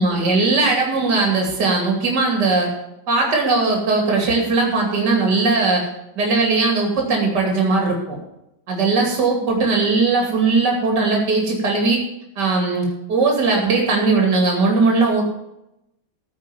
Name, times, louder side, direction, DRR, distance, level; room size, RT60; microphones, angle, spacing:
voice 1, 0.0-2.7 3.1-5.9 6.1-8.2 8.7-12.0 12.4-15.2, right 3 dB, 60° right, 0 dB, 3.1 m, -19 dB
14.5 x 5.8 x 7.2 m, 0.85 s
omnidirectional pair, 2.2 m